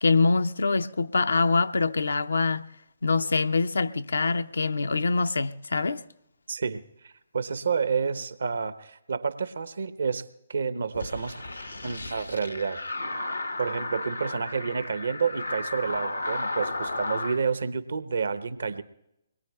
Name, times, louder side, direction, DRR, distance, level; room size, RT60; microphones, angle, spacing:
voice 1, 0.0-2.6 3.0-6.0, left 4 dB, 70° left, 0.5 m, -24 dB
voice 2, 6.5-11.4 11.8-12.8 13.6-18.8, right 5 dB, 65° right, 0.7 m, -29 dB
sound 1, 10.9-17.4, left 2 dB, 90° left, 1.1 m, -34 dB
24.0 x 21.0 x 2.3 m
figure-of-eight pair, 130°, 0 cm